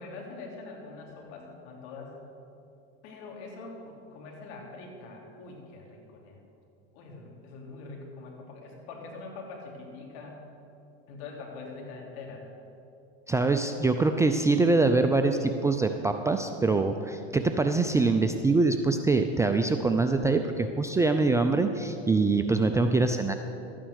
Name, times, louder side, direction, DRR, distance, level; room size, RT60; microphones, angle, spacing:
voice 1, 0.0-2.2 3.0-6.4 6.9-10.5 11.1-12.5, left 3 dB, 60° left, 0 dB, 3.2 m, -43 dB
voice 2, 13.3-23.3, right 3 dB, 10° right, 6 dB, 0.4 m, -24 dB
12.5 x 9.3 x 6.5 m, 2.8 s
hypercardioid pair, 115°, 32 cm